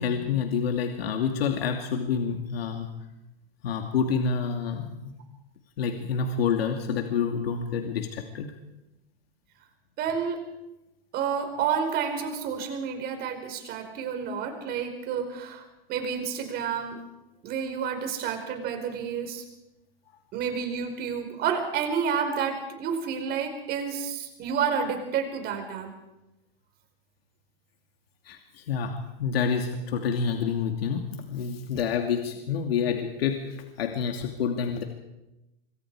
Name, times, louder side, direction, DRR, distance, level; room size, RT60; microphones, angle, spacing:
voice 1, 0.0-2.9 3.6-5.1 5.8-8.5 14.3-14.4 28.2-34.8, left 6 dB, 80° left, 4 dB, 2.7 m, -28 dB
voice 2, 10.0-10.4 11.1-15.6 15.9-17.0 17.4-19.4 20.3-25.9, right 7 dB, 30° right, 5 dB, 4.9 m, -30 dB
25.5 x 24.0 x 4.9 m, 0.96 s
hypercardioid pair, 145°, 30 cm